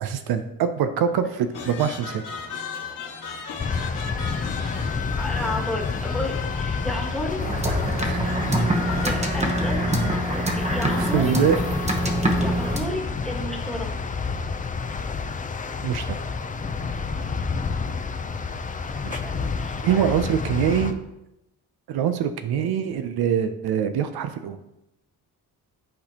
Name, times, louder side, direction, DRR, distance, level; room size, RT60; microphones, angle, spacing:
voice 1, 0.0-2.2 8.0-8.3 11.0-11.6 12.8-13.0 15.8-16.2 19.0-19.2 19.8-21.0 21.9-24.6, right 8 dB, 70° right, 9 dB, 0.6 m, -24 dB
sound 1, 1.5-10.2, left 5 dB, 55° left, 1.5 m, -36 dB
sound 2, 3.6-20.9, left 4 dB, 20° left, 0.4 m, -29 dB
voice 2, 5.1-7.4 8.7-11.3 12.3-13.9 16.9-17.2 19.2-20.3, left 1 dB, ahead, -2 dB, 1.4 m, -33 dB
sound 3, 7.4-12.8, right 1 dB, 15° right, 1.0 m, -25 dB
10.5 x 4.2 x 2.9 m, 0.89 s
cardioid pair, 105°, 39 cm